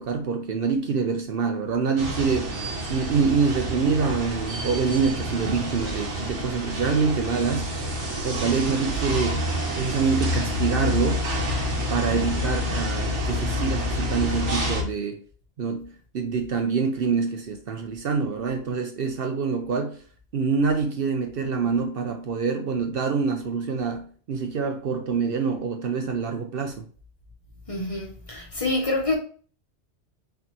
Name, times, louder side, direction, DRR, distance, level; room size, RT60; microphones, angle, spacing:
voice 1, 0.0-2.6 2.9-7.7 8.2-9.5 9.7-11.3 11.9-15.2 15.6-20.0 20.3-26.9, right 5 dB, 60° right, 0.7 m, -26 dB
sound 1, 2.0-14.8, equal, 85° right, 1.4 m, -28 dB
voice 2, 27.7-29.2, left 2 dB, 30° left, 0.9 m, -27 dB
4.5 x 4.0 x 2.9 m
omnidirectional pair, 1.2 m